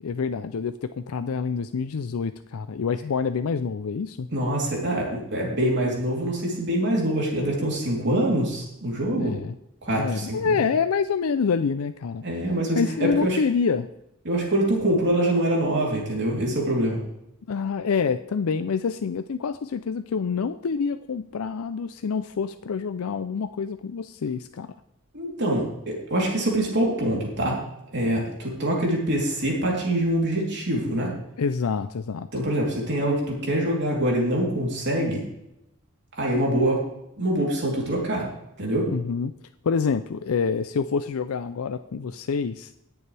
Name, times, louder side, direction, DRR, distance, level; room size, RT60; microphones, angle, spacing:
voice 1, 0.0-4.3 9.1-9.5 9.9-12.2 12.8-13.9 17.5-24.7 31.4-32.3 38.9-39.3 39.6-42.7, left 5 dB, 75° left, 11 dB, 0.5 m, -27 dB
voice 2, 4.3-9.3 9.8-10.6 12.2-13.4 14.2-17.0 25.1-27.6 27.9-31.1 32.3-35.2 36.1-36.8 37.2-38.3 38.6-38.9, right 1 dB, 55° right, -2 dB, 3.4 m, -24 dB
19.0 x 7.0 x 3.4 m, 0.85 s
head